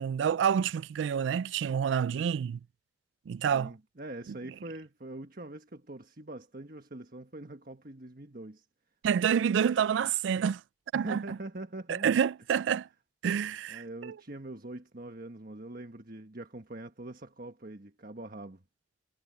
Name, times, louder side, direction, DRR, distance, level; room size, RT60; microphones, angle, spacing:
voice 1, 0.0-2.6 3.3-3.7 9.0-10.6 10.9-11.2 12.0-12.9 13.2-14.1, right 8 dB, 85° right, 0.3 m, -28 dB
voice 2, 3.5-8.7 10.9-12.1 13.7-18.6, right 2 dB, 50° right, 1.5 m, -43 dB
head